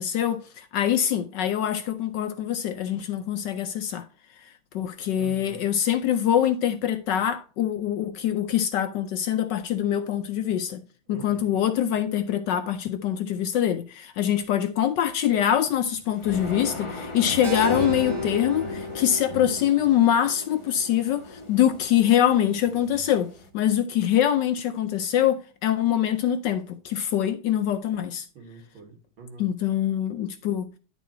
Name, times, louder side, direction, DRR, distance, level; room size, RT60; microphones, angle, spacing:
voice 1, 0.0-4.1 4.4-4.5 4.7-10.8 11.1-28.3 29.4-30.7, left 10 dB, 70° left, 1.1 m, -24 dB
voice 2, 5.2-5.6 11.1-11.5 28.3-29.5, right 4 dB, 75° right, 2.8 m, -44 dB
sound 1, 15.5-23.5, left 1 dB, 20° left, 0.9 m, -37 dB
Keyboard (musical), 17.4-21.8, left 2 dB, 15° right, 1.5 m, -35 dB
10.5 x 4.2 x 4.3 m
omnidirectional pair, 2.3 m